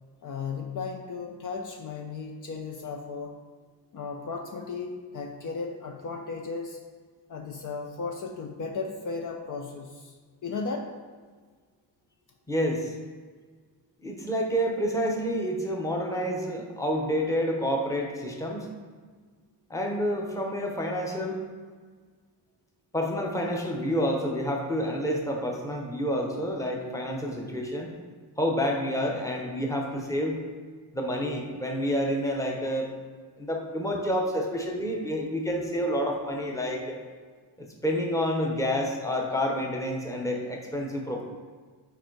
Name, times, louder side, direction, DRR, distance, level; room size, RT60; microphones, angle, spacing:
voice 1, 0.2-3.4 3.9-6.8 7.3-10.1 10.4-10.9, left 4 dB, 50° left, 2 dB, 0.6 m, -35 dB
voice 2, 12.5-12.9 14.0-18.7 19.7-21.4 22.9-27.9 28.4-30.4 30.9-32.9 33.4-37.0 37.8-41.2, equal, 10° left, 0 dB, 0.9 m, -28 dB
9.0 x 4.6 x 4.6 m, 1.5 s
wide cardioid pair, 175°, 42 cm